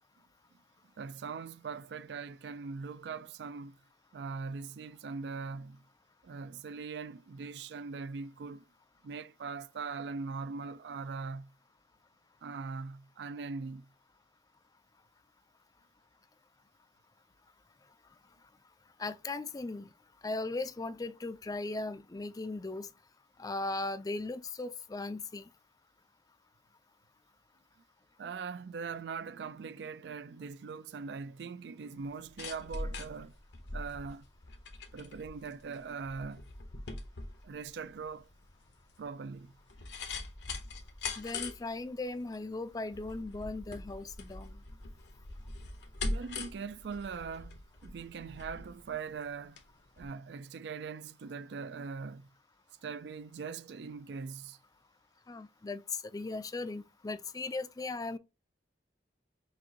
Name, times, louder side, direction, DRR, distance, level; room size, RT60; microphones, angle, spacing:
voice 1, 1.0-3.8 4.1-5.8 6.2-8.7 9.0-11.5 12.4-13.9 28.2-33.4 33.7-34.3 34.9-36.5 37.4-38.3 39.0-39.5 46.0-49.6 50.0-52.3 52.8-54.6, right 5 dB, 70° right, 0.4 m, -41 dB
voice 2, 19.0-19.9 20.2-22.9 23.4-25.4 41.2-44.6 55.3-55.8 56.1-58.2, left 2 dB, 20° left, 0.4 m, -38 dB
sound 1, 32.0-49.7 50.0-50.1, left 3 dB, 80° left, 1.1 m, -42 dB
6.3 x 2.6 x 2.8 m
head